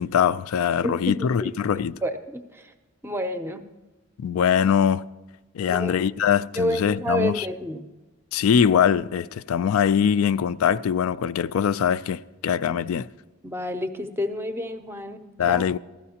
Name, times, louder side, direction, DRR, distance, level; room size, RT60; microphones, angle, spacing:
voice 1, 0.0-2.0 4.2-5.0 5.5-7.5 8.3-13.1 15.4-15.8, left 8 dB, 85° left, 0.3 m, -22 dB
voice 2, 0.8-1.1 1.4-1.5 2.0-2.7 3.0-3.7 5.7-5.9 6.6-7.9 13.4-15.6, equal, 10° right, 0.5 m, -29 dB
15.5 x 12.5 x 2.8 m
head